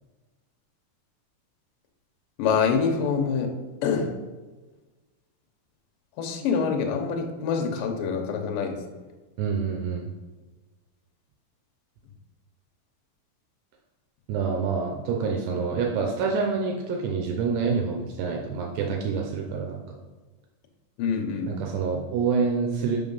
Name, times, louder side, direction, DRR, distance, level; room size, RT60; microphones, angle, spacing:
voice 1, 2.4-3.5 3.8-4.1 6.2-8.8 21.0-21.5, left 6 dB, 90° left, 3 dB, 1.9 m, -25 dB
voice 2, 9.4-10.1 14.3-19.8 21.5-23.0, right 5 dB, 80° right, 1 dB, 2.6 m, -27 dB
6.3 x 5.5 x 5.5 m, 1.2 s
omnidirectional pair, 5.4 m